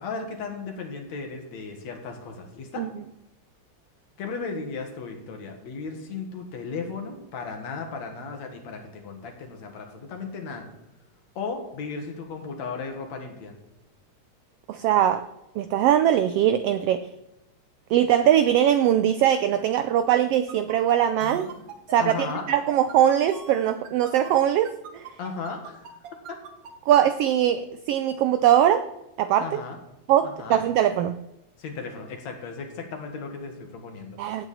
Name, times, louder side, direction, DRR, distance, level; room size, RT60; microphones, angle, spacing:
voice 1, 0.0-2.8 4.2-10.7 11.4-13.5 22.0-22.4 25.2-25.9 29.4-29.8 30.2-30.6 31.6-34.2, left 4 dB, 70° left, 3 dB, 2.8 m, -35 dB
voice 2, 14.7-15.3 15.6-17.1 17.9-21.5 21.9-25.1 26.9-28.9 29.2-29.6 30.1-31.2 34.2-34.5, right 10 dB, 85° right, 11 dB, 1.3 m, -21 dB
sound 1, 20.5-26.7, right 6 dB, 60° right, 2.0 m, -41 dB
16.0 x 8.3 x 4.2 m, 0.92 s
omnidirectional pair, 3.3 m